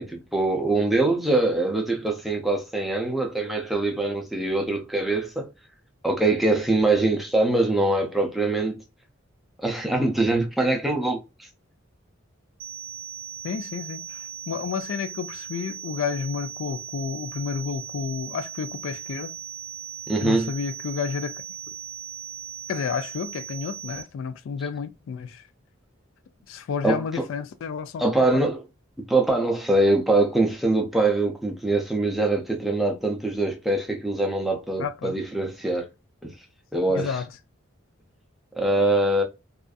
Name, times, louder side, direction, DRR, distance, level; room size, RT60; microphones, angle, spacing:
voice 1, 0.0-5.4 6.0-8.8 9.6-11.2 20.1-20.5 26.8-27.0 28.0-28.6 29.1-35.9 36.2-36.3 36.7-37.2 38.6-39.2, right 2 dB, ahead, 0.4 m, -23 dB
sound 1, 12.6-24.0, right 9 dB, 70° right, 0.5 m, -38 dB
voice 2, 13.4-19.3 20.2-21.3 22.7-25.4 26.5-28.5 34.8-35.2 36.9-37.3, left 6 dB, 70° left, 0.3 m, -31 dB
2.5 x 2.4 x 2.2 m
head